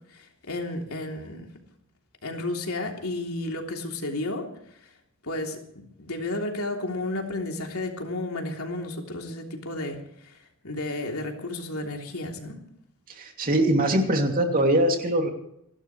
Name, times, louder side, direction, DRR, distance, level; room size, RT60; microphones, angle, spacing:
voice 1, 0.1-1.5 2.2-4.5 5.2-10.4 10.6-12.6, left 2 dB, 80° left, 1 dB, 3.2 m, -32 dB
voice 2, 13.1-15.3, right 1 dB, 40° right, 3 dB, 2.7 m, -22 dB
28.5 x 12.5 x 3.3 m, 0.74 s
head